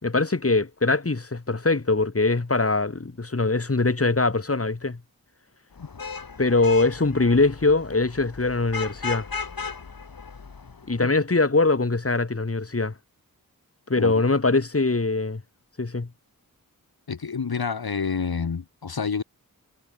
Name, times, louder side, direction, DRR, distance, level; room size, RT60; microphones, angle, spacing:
voice 1, 0.0-5.0 6.4-9.3 10.9-12.9 13.9-15.4 15.8-16.1, left 3 dB, 40° left, 6.2 m, -22 dB
Vehicle horn car horn honking / Traffic noise roadway noise, 5.8-11.0, left 5 dB, 70° left, 6.1 m, -36 dB
voice 2, 17.1-19.2, left 5 dB, 85° left, 5.3 m, -28 dB
wide cardioid pair, 75°, 36 cm